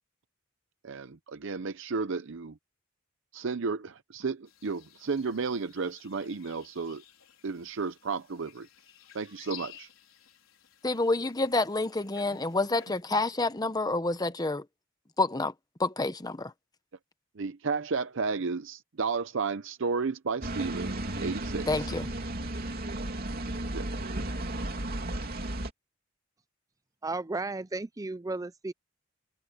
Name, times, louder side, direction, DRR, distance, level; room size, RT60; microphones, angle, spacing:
voice 1, 0.8-2.6 3.3-7.0 7.4-8.7 9.1-9.9 17.4-21.9 23.7-23.9, right 4 dB, 65° right, 0.6 m, -33 dB
sound 1, 4.5-13.0, left 10 dB, 80° left, 4.8 m, -53 dB
voice 2, 10.8-14.6 15.2-15.5 15.8-16.5 21.7-22.1, left 2 dB, 20° left, 1.0 m, -28 dB
sound 2, 20.4-25.7, right 1 dB, 50° right, 3.0 m, -34 dB
voice 3, 27.0-28.7, right 2 dB, 15° right, 0.5 m, -34 dB
head